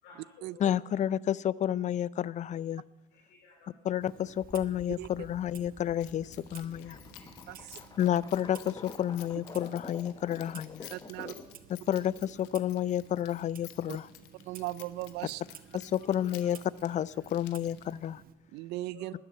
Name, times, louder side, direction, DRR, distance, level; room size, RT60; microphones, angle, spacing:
voice 1, 0.0-0.7 3.1-3.7 4.0-4.2 6.8-7.9 11.2-11.4 11.9-12.2 15.5-15.6 16.0-16.1 16.4-16.5 17.1-17.2 18.9-19.1, left 5 dB, 75° left, 0 dB, 3.3 m, -56 dB
voice 2, 0.6-2.8 3.8-7.0 8.0-10.9 11.9-14.1 15.7-18.2, left 10 dB, 45° left, 22 dB, 0.5 m, -30 dB
Clock, 4.0-18.3, right 9 dB, 55° right, 1.1 m, -55 dB
sound 1, 4.4-11.6, left 4 dB, 25° left, 1.0 m, -48 dB
voice 3, 5.0-5.3 7.5-7.8 10.9-11.3 13.9-14.0 14.5-15.4 18.5-19.1, right 17 dB, 75° right, 20 dB, 0.5 m, -38 dB
Keys jangling, 6.0-18.1, left 14 dB, 90° left, 1.1 m, -54 dB
12.5 x 9.6 x 8.8 m, 1.0 s
supercardioid pair, 85°, 17 cm